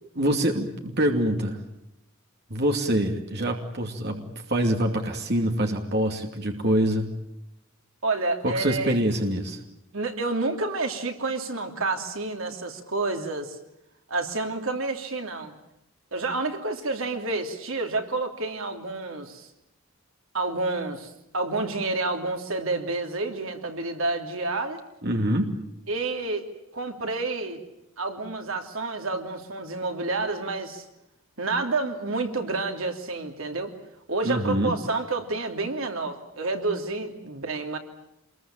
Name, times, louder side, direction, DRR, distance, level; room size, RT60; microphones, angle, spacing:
voice 1, 0.0-1.6 2.5-7.1 8.4-9.6 25.0-25.5 34.2-34.7, right 1 dB, 50° right, 3 dB, 2.6 m, -25 dB
voice 2, 8.0-8.9 9.9-13.6 14.1-15.6 16.1-19.5 20.3-24.8 25.9-26.4 26.7-27.6 28.0-30.9 31.4-33.7 34.1-37.8, right 3 dB, 75° right, 4 dB, 3.0 m, -29 dB
27.0 x 22.0 x 8.9 m, 0.85 s
head